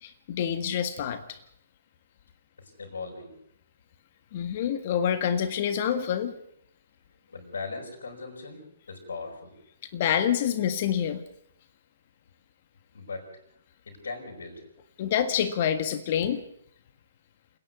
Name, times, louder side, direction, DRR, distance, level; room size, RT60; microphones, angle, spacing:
voice 1, 0.0-1.4 4.3-6.3 9.9-11.2 15.0-16.4, left 9 dB, 45° left, 10 dB, 1.7 m, -27 dB
voice 2, 2.6-3.3 7.3-9.5 12.9-13.3 13.9-14.7, left 4 dB, 70° left, -4 dB, 7.0 m, -39 dB
29.0 x 10.5 x 9.7 m, 0.72 s
hypercardioid pair, 135°, 0 cm